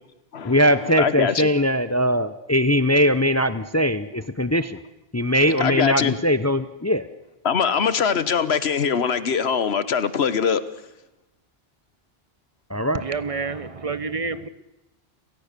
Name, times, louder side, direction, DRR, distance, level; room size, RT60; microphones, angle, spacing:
voice 1, 0.4-4.8 5.1-7.1 12.7-13.0, equal, 20° left, 0.6 m, -21 dB
voice 2, 1.0-1.5 5.6-6.2 7.4-10.6, left 6 dB, 80° left, 1.4 m, -22 dB
voice 3, 12.9-14.5, right 4 dB, 35° right, 1.0 m, -28 dB
30.0 x 17.0 x 6.8 m
omnidirectional pair, 1.1 m